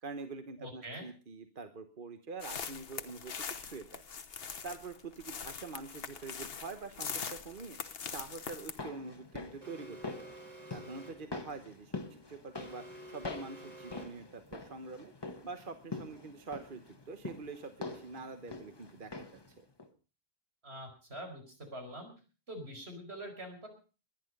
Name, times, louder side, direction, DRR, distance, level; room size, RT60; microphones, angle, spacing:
voice 1, 0.0-3.3 3.6-4.0 4.6-10.3 10.7-15.1 15.4-19.3 19.6-19.7, right 4 dB, 55° right, 8 dB, 1.3 m, -45 dB
voice 2, 0.6-1.1 20.6-22.1 22.5-23.7, right 1 dB, 80° right, 4 dB, 5.3 m, -44 dB
sound 1, 2.4-8.8, left 6 dB, 70° left, 1.2 m, -42 dB
sound 2, 8.5-19.5 19.8-19.9, left 3 dB, 25° left, 1.1 m, -45 dB
Alarm, 9.6-11.4 12.5-14.3, right 1 dB, 40° right, 3.0 m, -50 dB
21.5 x 10.5 x 5.3 m, 0.36 s
omnidirectional pair, 1.1 m